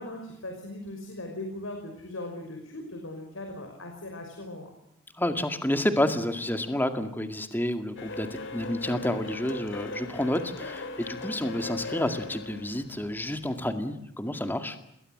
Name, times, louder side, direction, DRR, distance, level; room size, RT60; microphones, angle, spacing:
voice 1, 0.0-4.7, left 1 dB, 85° left, 3 dB, 5.7 m, -39 dB
voice 2, 5.2-14.8, left 1 dB, 10° left, 7 dB, 2.1 m, -29 dB
sound 1, 8.0-13.7, left 2 dB, 60° left, 3.3 m, -39 dB
28.5 x 21.0 x 7.9 m, 0.78 s
head